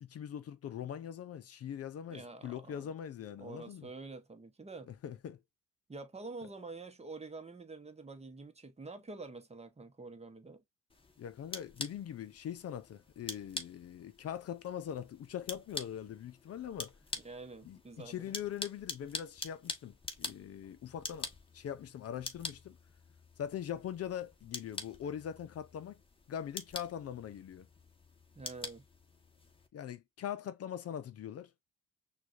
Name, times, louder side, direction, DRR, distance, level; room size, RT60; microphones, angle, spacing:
voice 1, 0.0-3.9 4.8-5.4 11.2-17.0 17.6-21.3 21.5-22.8 23.4-26.0 26.3-27.7 29.7-31.5, left 9 dB, 55° left, 0.6 m, -42 dB
voice 2, 2.1-2.9 3.4-4.9 5.9-10.6 17.2-18.3 28.3-28.8, right 3 dB, 20° right, 0.9 m, -47 dB
sound 1, 10.9-29.7, left 2 dB, 20° left, 1.1 m, -46 dB
6.0 x 2.4 x 2.5 m
cardioid pair, 90°, 30 cm